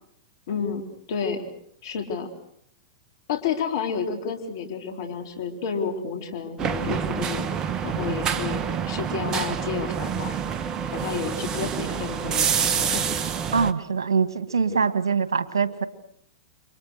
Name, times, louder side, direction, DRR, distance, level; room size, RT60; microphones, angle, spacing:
voice 1, 0.5-0.8 1.1-1.5 1.8-2.3 3.3-7.5 7.8-10.3 10.9-13.4 14.8-14.9, left 6 dB, 65° left, 4 dB, 4.2 m, -30 dB
sound 1, 6.6-13.7, right 7 dB, 30° right, 1.4 m, -27 dB
voice 2, 13.5-15.8, right 5 dB, 85° right, 12 dB, 2.0 m, -23 dB
30.0 x 24.5 x 6.7 m, 0.70 s
hypercardioid pair, 105°, 2 cm